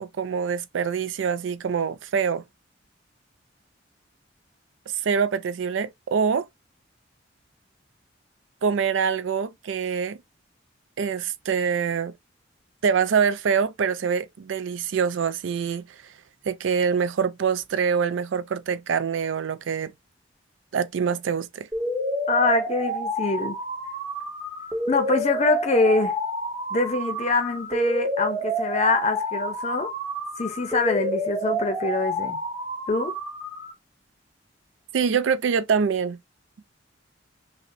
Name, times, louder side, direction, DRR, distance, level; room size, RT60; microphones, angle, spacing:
voice 1, 0.0-2.4 5.0-6.5 8.6-10.2 11.0-12.1 12.8-16.0 16.5-19.9 20.7-21.7 34.9-36.2, right 6 dB, 80° right, 0.4 m, -25 dB
sound 1, 21.7-33.7, right 1 dB, 20° right, 0.9 m, -29 dB
voice 2, 22.3-23.6 24.9-26.1 26.7-29.9 30.4-32.4 32.9-33.1, left 3 dB, 35° left, 0.6 m, -24 dB
5.6 x 2.1 x 2.5 m
head